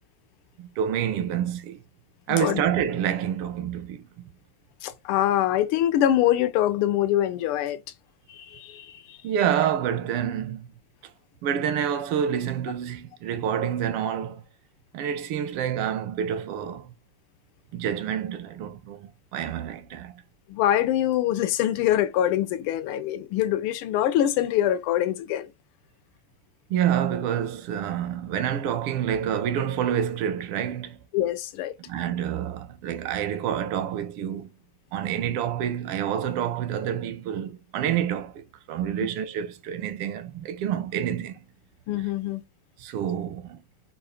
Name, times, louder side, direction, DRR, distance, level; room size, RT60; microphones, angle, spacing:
voice 1, 0.6-1.8 2.3-4.3 9.2-10.7 11.4-14.4 14.9-16.9 17.7-20.1 26.7-31.0 31.8-34.5 34.9-41.4 42.8-43.6, right 9 dB, 85° right, 1.6 m, -28 dB
voice 2, 2.3-2.6 4.8-7.8 8.3-9.2 20.5-25.5 31.1-31.7 41.9-42.4, left 12 dB, 85° left, 1.5 m, -24 dB
4.4 x 2.5 x 4.8 m
omnidirectional pair, 2.4 m